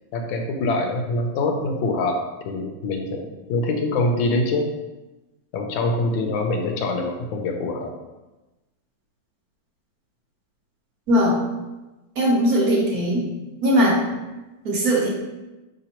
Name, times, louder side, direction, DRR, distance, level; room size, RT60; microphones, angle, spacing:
voice 1, 0.1-4.7 5.5-7.9, left 2 dB, 85° left, 3 dB, 1.4 m, -24 dB
voice 2, 12.2-13.2 13.6-14.0 14.6-15.1, equal, 60° right, -3 dB, 1.1 m, -19 dB
4.9 x 3.4 x 2.9 m, 1.1 s
omnidirectional pair, 2.0 m